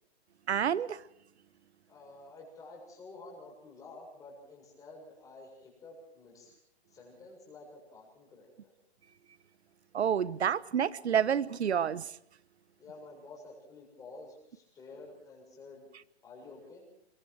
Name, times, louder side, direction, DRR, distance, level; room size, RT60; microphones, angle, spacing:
voice 1, 0.5-1.0 9.9-12.1, right 8 dB, 80° right, 1.0 m, -29 dB
voice 2, 1.9-6.6 6.9-8.7 12.8-15.9 16.2-16.9, left 3 dB, 10° left, 7.0 m, -50 dB
24.0 x 23.0 x 4.7 m
hypercardioid pair, 160°, 32 cm